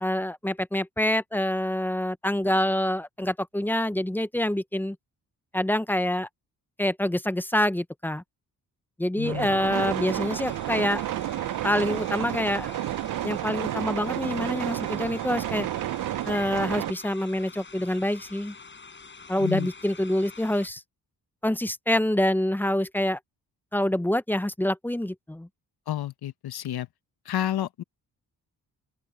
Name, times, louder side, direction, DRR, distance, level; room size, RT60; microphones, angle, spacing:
voice 1, 0.0-5.0 5.5-6.3 6.8-8.2 9.0-11.0 11.6-12.7 13.2-15.7 16.3-18.5 19.3-20.8 21.4-23.2 23.7-25.5, left 1 dB, 5° left, 0.5 m, -26 dB
voice 2, 9.2-9.5 19.4-19.7 25.9-26.9 27.2-27.8, left 12 dB, 80° left, 1.1 m, -30 dB
sound 1, 9.2-16.9, right 13 dB, 60° right, 0.4 m, -31 dB
sound 2, 9.9-20.7, left 4 dB, 30° left, 7.1 m, -46 dB
open air
wide cardioid pair, 135°, 38 cm